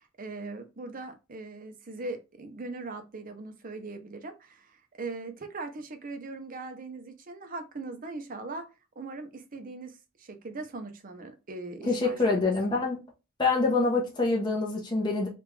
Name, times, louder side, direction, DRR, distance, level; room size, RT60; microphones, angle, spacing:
voice 1, 0.0-8.7 9.0-12.5, right 3 dB, 45° right, 0.6 m, -40 dB
voice 2, 11.9-13.0 13.4-15.3, left 3 dB, 20° left, 0.7 m, -26 dB
3.4 x 2.5 x 3.2 m
head